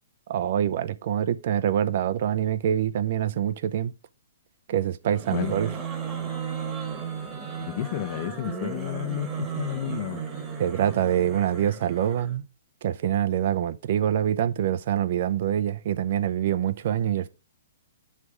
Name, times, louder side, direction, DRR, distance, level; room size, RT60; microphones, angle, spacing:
voice 1, 0.3-3.9 4.7-5.7 10.6-12.4 12.8-17.3, right 10 dB, 55° right, 0.5 m, -25 dB
sound 1, 5.0-12.4, right 6 dB, 15° right, 1.1 m, -35 dB
voice 2, 7.6-10.2, left 12 dB, 45° left, 0.5 m, -31 dB
9.6 x 3.3 x 4.7 m
hypercardioid pair, 150°, 0 cm